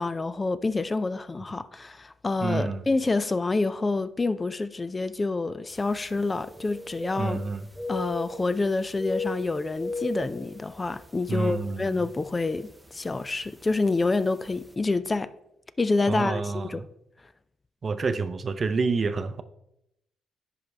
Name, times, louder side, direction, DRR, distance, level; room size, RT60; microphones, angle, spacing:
voice 1, 0.0-7.4 7.9-15.3 15.8-16.8, left 3 dB, 25° left, 0.4 m, -27 dB
voice 2, 2.4-2.8 7.2-7.7 11.3-12.1 16.1-16.8 17.8-19.4, right 4 dB, 40° right, 0.5 m, -28 dB
sound 1, 5.8-5.9 6.2-7.5 7.7-8.6 8.9-11.1 11.5-11.6 12.3-12.6 13.6-13.7 14.1-14.2, left 2 dB, 5° right, 0.7 m, -35 dB
10.5 x 4.6 x 3.3 m
supercardioid pair, 60°, 0 cm